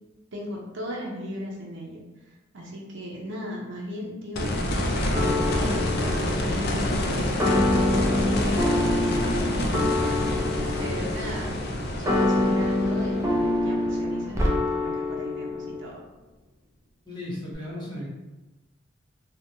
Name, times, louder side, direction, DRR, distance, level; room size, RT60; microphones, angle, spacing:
voice 1, 0.3-2.0 2.5-9.1 9.4-11.6 11.9-16.0, equal, 65° right, -2 dB, 0.6 m, -37 dB
sound 1, 4.3-15.3 17.5-17.6, left 1 dB, 55° left, 0.4 m, -28 dB
sound 2, 5.1-15.8, left 2 dB, 15° right, 0.3 m, -26 dB
voice 2, 17.0-18.1, left 1 dB, 20° left, -7 dB, 0.9 m, -35 dB
2.9 x 2.1 x 2.6 m, 1.1 s
head